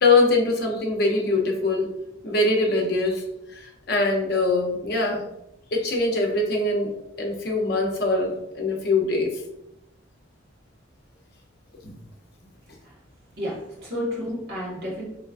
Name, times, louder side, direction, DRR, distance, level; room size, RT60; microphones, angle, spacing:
voice 1, 0.0-1.9 2.2-3.2 3.5-5.2 5.7-6.9 7.2-9.3 11.8-11.9, left 2 dB, 50° left, 0 dB, 0.7 m, -22 dB
voice 2, 13.4-15.0, equal, 50° right, -5 dB, 1.4 m, -31 dB
3.7 x 3.2 x 2.5 m, 0.84 s
head